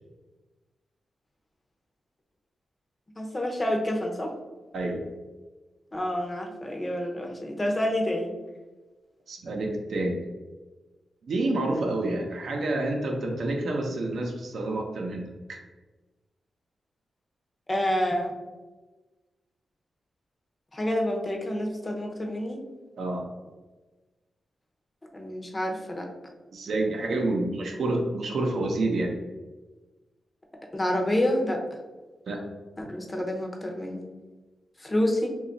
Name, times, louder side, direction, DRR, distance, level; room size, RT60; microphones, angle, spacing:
voice 1, 3.2-4.3 5.9-8.3 17.7-18.3 20.7-22.6 25.1-26.1 30.7-31.6 32.8-34.1 34.8-35.3, left 1 dB, 20° left, 1 dB, 0.5 m, -28 dB
voice 2, 4.7-5.1 9.3-10.2 11.2-15.6 23.0-23.3 26.5-29.1 32.3-32.4, right 2 dB, 70° right, 1 dB, 0.6 m, -28 dB
2.9 x 2.3 x 3.8 m, 1.2 s
wide cardioid pair, 105°, 0 cm